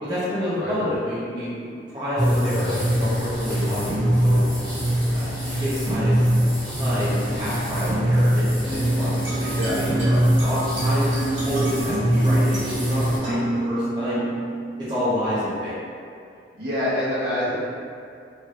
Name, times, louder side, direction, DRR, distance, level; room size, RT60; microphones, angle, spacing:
voice 1, 0.0-4.4 5.1-6.3 6.7-9.1 9.4-9.5 9.7-11.1 11.5-13.4 13.7-14.2 14.8-15.7, left 1 dB, 25° right, -12 dB, 0.6 m, -28 dB
sound 1, 2.2-13.2, equal, 5° left, 1.2 m, -22 dB
sound 2, 8.6-15.6, right 2 dB, 75° right, 1.3 m, -30 dB
voice 2, 9.3-10.2 16.5-17.6, left 1 dB, 60° right, -10 dB, 1.0 m, -27 dB
3.1 x 2.7 x 2.4 m, 2.4 s
head